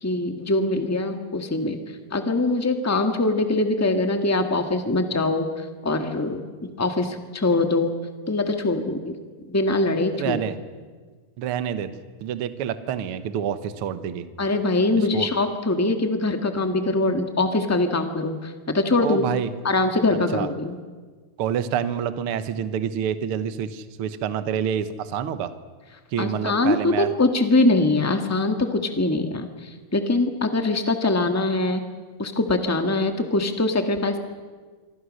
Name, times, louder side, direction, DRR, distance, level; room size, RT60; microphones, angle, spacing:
voice 1, 0.0-1.8 2.1-7.9 8.3-9.1 9.5-10.4 14.4-19.3 19.6-20.8 26.2-31.8 32.2-34.2, left 2 dB, 15° left, 6 dB, 0.6 m, -23 dB
voice 2, 10.2-10.6 11.4-11.9 12.2-14.3 15.0-15.3 19.0-19.5 20.1-20.5 21.4-25.5 26.1-27.1, right 8 dB, 65° right, 11 dB, 1.4 m, -27 dB
26.0 x 24.5 x 6.5 m, 1.4 s
omnidirectional pair, 3.8 m